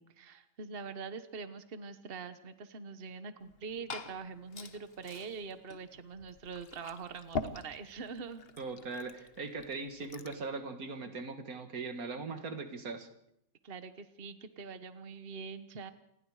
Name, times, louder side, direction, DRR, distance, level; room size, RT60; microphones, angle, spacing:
voice 1, 0.0-8.4 13.6-15.9, right 5 dB, 45° right, 10 dB, 1.3 m, -44 dB
Liquid, 3.4-10.5, left 4 dB, 45° left, 1.3 m, -45 dB
voice 2, 8.6-13.1, right 4 dB, 90° right, 7 dB, 2.2 m, -40 dB
28.0 x 20.0 x 4.9 m, 0.79 s
omnidirectional pair, 1.5 m